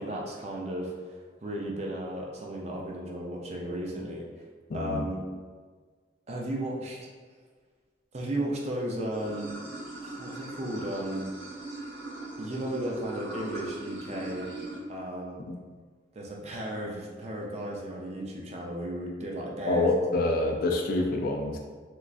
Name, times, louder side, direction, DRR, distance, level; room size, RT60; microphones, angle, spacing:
voice 1, 0.0-4.4 4.7-5.2 6.3-7.1 8.1-9.6 10.0-11.2 12.4-14.5 14.9-15.4 16.1-19.9, right 1 dB, 35° right, -2 dB, 0.5 m, -35 dB
voice 2, 4.7-5.1 15.5-15.6 19.7-21.6, left 2 dB, 50° left, 3 dB, 0.3 m, -26 dB
Water / Sink (filling or washing), 9.1-14.8, right 2 dB, 70° right, 1.2 m, -40 dB
3.1 x 2.4 x 2.4 m, 1.5 s
head